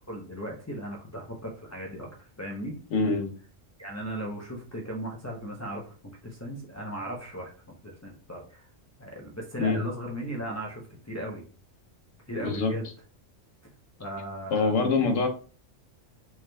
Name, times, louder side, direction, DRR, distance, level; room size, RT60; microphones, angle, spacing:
voice 1, 0.1-2.7 3.8-8.7 9.0-11.4 12.3-12.9 14.0-15.1, right 1 dB, 20° left, -3 dB, 0.4 m, -37 dB
voice 2, 2.9-3.3 9.6-9.8 12.4-12.7 14.5-15.3, left 4 dB, 80° left, 5 dB, 1.1 m, -24 dB
4.6 x 3.1 x 2.2 m, 0.39 s
omnidirectional pair, 1.3 m